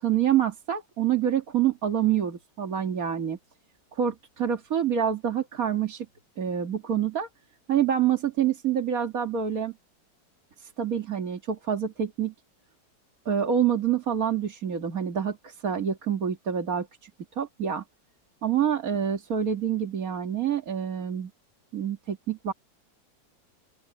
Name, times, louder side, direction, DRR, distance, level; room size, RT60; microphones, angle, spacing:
voice 1, 0.0-3.4 3.9-6.1 6.4-7.3 7.7-9.7 10.6-12.3 13.3-17.1 17.4-17.8 18.4-21.3 21.7-22.5, right 9 dB, 50° right, 2.2 m, -27 dB
open air
omnidirectional pair, 1.9 m